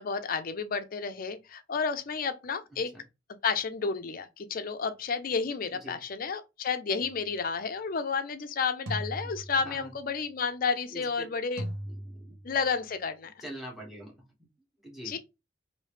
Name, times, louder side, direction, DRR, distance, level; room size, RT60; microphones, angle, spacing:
voice 1, 0.0-2.9 3.4-11.6 12.4-13.3 15.1-15.2, left 5 dB, 45° left, 0.4 m, -31 dB
voice 2, 2.7-3.0 5.7-6.0 9.6-9.9 10.9-11.3 11.9-12.4 13.4-14.1 14.8-15.2, equal, ahead, 1.1 m, -44 dB
sound 1, 7.0-7.3 8.9-10.0 11.6-12.8, equal, 80° right, 0.9 m, -39 dB
3.1 x 2.7 x 3.2 m
head